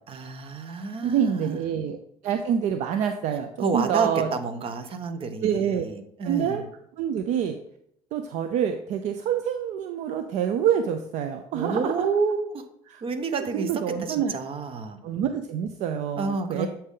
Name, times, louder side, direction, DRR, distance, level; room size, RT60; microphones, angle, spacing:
voice 1, 0.1-1.6 3.6-6.7 11.5-12.7 13.0-15.0 16.2-16.7, right 4 dB, 45° right, 9 dB, 0.9 m, -29 dB
voice 2, 1.0-4.3 5.4-5.8 6.2-6.6 7.0-7.6 8.1-12.1 12.9-13.0 13.4-14.3 15.0-16.7, right 8 dB, 65° right, 8 dB, 0.5 m, -26 dB
8.1 x 4.3 x 3.7 m, 0.72 s
supercardioid pair, 85°, 13 cm